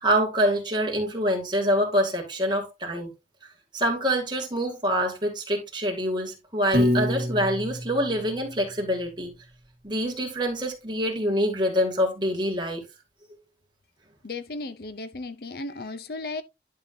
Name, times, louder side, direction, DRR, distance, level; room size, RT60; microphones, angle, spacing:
voice 1, 0.0-3.1 3.7-9.3 9.8-12.8, equal, 25° right, 2.5 m, -25 dB
Piano, 6.7-8.9, left 1 dB, 60° right, 2.4 m, -27 dB
voice 2, 14.2-16.4, left 3 dB, 60° left, 0.7 m, -35 dB
11.0 x 5.6 x 2.7 m
head